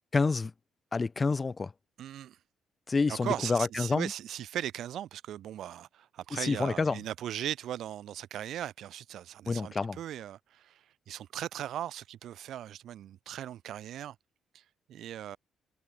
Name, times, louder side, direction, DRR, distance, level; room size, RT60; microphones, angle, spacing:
voice 1, 0.1-0.5 0.9-1.7 2.9-4.1 6.3-7.0 9.5-10.0, left 4 dB, 30° left, 0.8 m, -28 dB
voice 2, 2.0-2.4 3.1-14.1 14.9-15.4, right 11 dB, 75° right, 2.7 m, -38 dB
cardioid pair, 90°, 0 cm